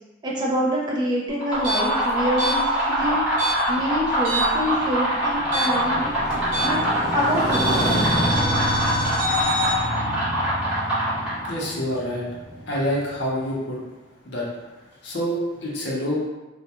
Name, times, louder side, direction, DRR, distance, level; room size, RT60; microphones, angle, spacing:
voice 1, 0.2-6.2 6.6-6.8 7.1-8.4, equal, 25° right, -3 dB, 0.4 m, -26 dB
sound 1, 1.3-11.6, equal, 5° right, 1.1 m, -24 dB
sound 2, 1.5-4.7 4.9-7.0 7.5-9.7, equal, 50° right, 1.1 m, -27 dB
Motorcycle, 3.5-13.4, equal, 15° left, 0.7 m, -29 dB
voice 2, 11.5-12.3 12.7-13.8 14.2-14.5 14.8-16.2, equal, 60° left, -4 dB, 0.7 m, -27 dB
2.3 x 2.2 x 2.8 m, 1.1 s
head